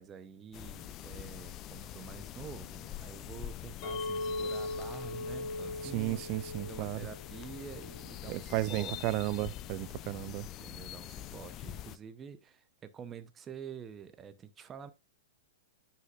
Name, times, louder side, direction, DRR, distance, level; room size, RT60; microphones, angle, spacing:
voice 1, 0.0-9.2 10.6-14.9, right 7 dB, 20° right, 0.7 m, -48 dB
sound 1, 0.5-12.0, left 12 dB, 30° left, 0.5 m, -45 dB
Chink clink, 3.8-8.1 8.6-9.0, left 2 dB, 45° left, 2.7 m, -40 dB
voice 2, 5.8-7.0 8.3-10.5, right 20 dB, 40° right, 0.3 m, -34 dB
9.5 x 5.7 x 2.4 m
hypercardioid pair, 140°, 0 cm